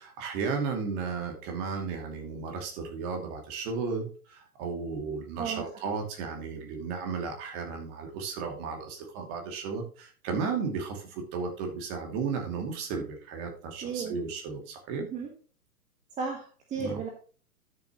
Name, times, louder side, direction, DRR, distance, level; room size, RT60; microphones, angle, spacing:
voice 1, 0.0-15.0 16.8-17.0, right 5 dB, 30° right, 3 dB, 2.6 m, -34 dB
voice 2, 13.8-14.1 15.0-15.3 16.2-17.1, right 5 dB, 15° right, 1 dB, 1.4 m, -34 dB
12.5 x 7.0 x 3.0 m, 0.40 s
figure-of-eight pair, 115°, 46 cm